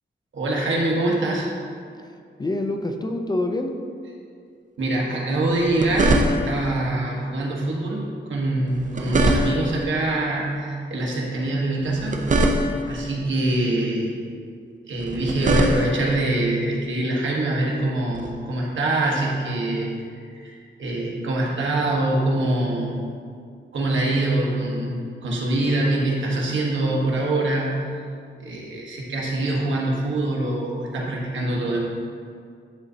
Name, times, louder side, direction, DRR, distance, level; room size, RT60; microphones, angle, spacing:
voice 1, 0.3-1.5 4.8-12.2 12.9-14.1 14.9-19.9 20.4-23.0 23.7-27.8 28.4-31.8, right 2 dB, 75° right, -3 dB, 1.2 m, -24 dB
voice 2, 2.4-3.9, left 2 dB, 20° left, 3 dB, 0.4 m, -27 dB
sound 1, 5.5-6.7 8.7-9.8 11.8-13.0 15.0-16.2 18.1-18.3, right 1 dB, 40° right, 0.5 m, -22 dB
10.0 x 3.9 x 2.7 m, 2.3 s
wide cardioid pair, 120°, 20 cm